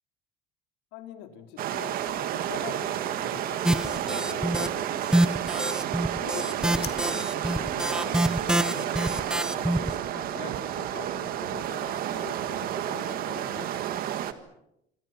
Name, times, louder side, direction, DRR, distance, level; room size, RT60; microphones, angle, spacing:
voice 1, 0.9-5.4 6.2-13.7, left 9 dB, 85° left, 6 dB, 3.9 m, -43 dB
sound 1, 1.6-14.3, right 11 dB, 50° right, 1.7 m, -31 dB
sound 2, 3.6-4.7 5.0-9.9, right 1 dB, 5° right, 0.9 m, -26 dB
sound 3, 5.7-8.5, left 13 dB, 50° left, 2.7 m, -47 dB
27.5 x 25.0 x 5.9 m, 0.80 s
cardioid pair, 155°, 20 cm